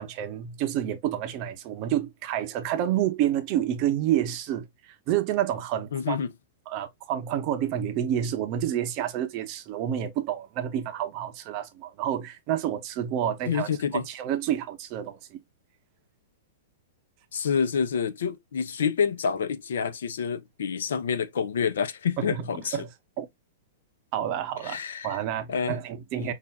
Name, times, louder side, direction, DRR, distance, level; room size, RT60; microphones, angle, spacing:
voice 1, 0.0-6.2 6.7-15.4 22.2-22.9 23.2-23.3 24.1-24.8 25.0-26.3, right 11 dB, 25° right, 0.6 m, -29 dB
voice 2, 5.9-6.3 13.5-14.0 17.3-22.8 24.6-25.2 25.5-25.8 26.1-26.3, left 6 dB, 75° left, 0.6 m, -28 dB
5.4 x 2.4 x 2.3 m
supercardioid pair, 175°, 0 cm